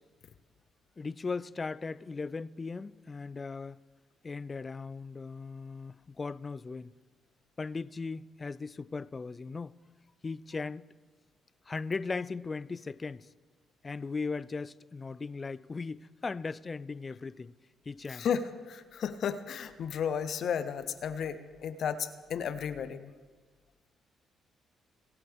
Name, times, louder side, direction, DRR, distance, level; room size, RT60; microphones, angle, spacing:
voice 1, 1.0-3.8 4.2-6.9 7.6-9.8 10.2-10.9 11.7-13.3 13.8-17.5 17.9-18.3, left 4 dB, 30° left, 0.3 m, -38 dB
voice 2, 18.1-23.1, left 7 dB, 65° left, 0.7 m, -33 dB
23.5 x 7.9 x 3.6 m
cardioid pair, 90°, 0 cm